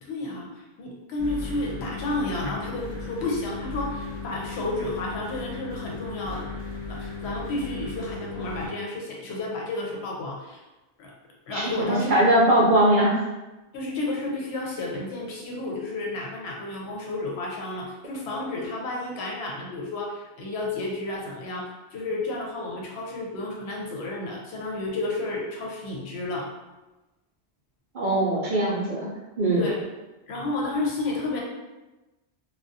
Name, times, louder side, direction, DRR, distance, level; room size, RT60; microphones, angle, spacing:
voice 1, 0.0-6.4 6.9-10.6 11.0-11.1 11.5-12.2 13.7-26.5 29.5-29.8 30.3-31.4, left 2 dB, 75° left, -2 dB, 0.9 m, -31 dB
sound 1, 1.2-8.7, left 3 dB, 25° right, 0.7 m, -36 dB
voice 2, 11.5-13.2 27.9-29.1 29.4-29.6, right 1 dB, 60° right, -6 dB, 0.6 m, -21 dB
2.3 x 2.2 x 2.6 m, 1.1 s
omnidirectional pair, 1.2 m